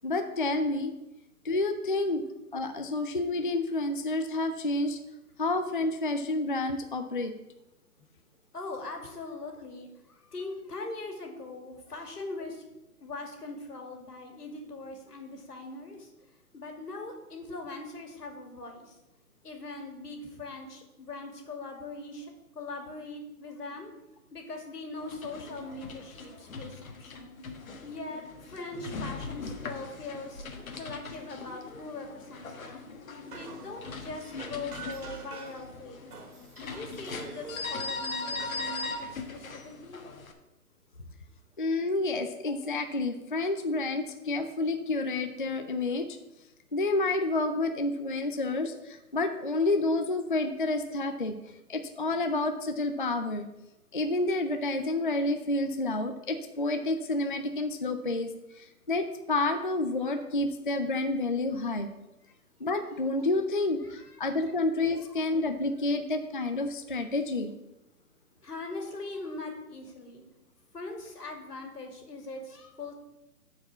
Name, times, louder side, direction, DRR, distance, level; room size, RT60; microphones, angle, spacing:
voice 1, 0.0-0.9 1.4-2.2 2.5-5.0 5.4-7.3 41.6-46.2 46.7-51.3 51.7-53.5 53.9-61.9 62.6-67.5, left 2 dB, 35° left, 6 dB, 0.4 m, -29 dB
voice 2, 8.5-9.9 10.2-12.6 13.0-16.1 16.5-18.9 19.4-23.9 24.3-27.4 27.8-30.5 30.7-32.9 33.3-36.1 36.6-40.1 61.6-61.7 63.2-63.4 63.8-64.2 68.4-70.2 70.7-73.0, left 3 dB, 85° left, 3 dB, 2.4 m, -41 dB
sound 1, 25.0-40.3, left 3 dB, 60° left, 1.5 m, -40 dB
sound 2, 33.3-35.7 36.1-38.5, right 5 dB, 70° right, 2.0 m, -45 dB
8.1 x 4.9 x 7.0 m, 0.94 s
hypercardioid pair, 155°, 46 cm